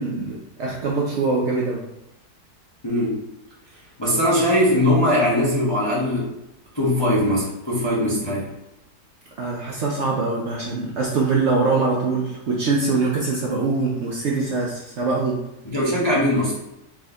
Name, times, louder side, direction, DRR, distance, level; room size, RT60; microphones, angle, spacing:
voice 1, 0.0-1.8 9.4-15.4, right 3 dB, 85° right, -2 dB, 0.6 m, -23 dB
voice 2, 2.8-3.2 4.0-6.3 6.7-8.5 15.6-16.6, left 1 dB, 30° left, -7 dB, 0.4 m, -20 dB
3.5 x 2.6 x 3.4 m, 0.88 s
omnidirectional pair, 1.8 m